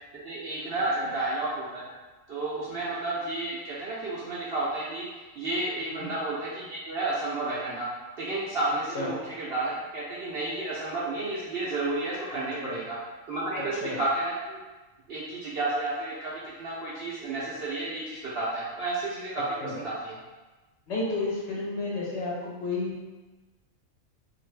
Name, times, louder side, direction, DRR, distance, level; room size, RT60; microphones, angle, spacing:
voice 1, 0.2-1.9 2.3-5.1 5.4-7.9 8.2-13.0 13.3-14.6 15.1-16.3 16.6-20.1, right 2 dB, 65° right, -7 dB, 0.6 m, -31 dB
voice 2, 5.8-6.1 8.9-9.1 12.6-12.8 13.8-14.0 19.6-19.7 20.9-23.1, left 2 dB, 60° left, -5 dB, 0.8 m, -32 dB
2.5 x 2.5 x 3.1 m, 1.2 s
omnidirectional pair, 1.4 m